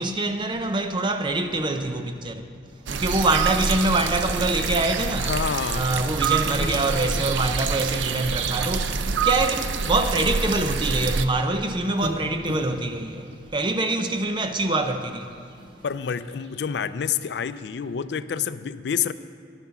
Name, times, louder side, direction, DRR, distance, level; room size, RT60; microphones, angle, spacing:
voice 1, 0.0-2.5 2.9-5.3 5.7-15.6, right 2 dB, 25° right, 0.6 m, -25 dB
sound 1, 2.7-18.1, equal, 65° right, 1.4 m, -42 dB
sound 2, 2.9-11.2, right 5 dB, 85° right, 0.5 m, -26 dB
voice 2, 5.2-6.0 7.4-7.6 15.8-19.1, left 7 dB, 65° left, 0.4 m, -28 dB
11.0 x 9.2 x 5.9 m
head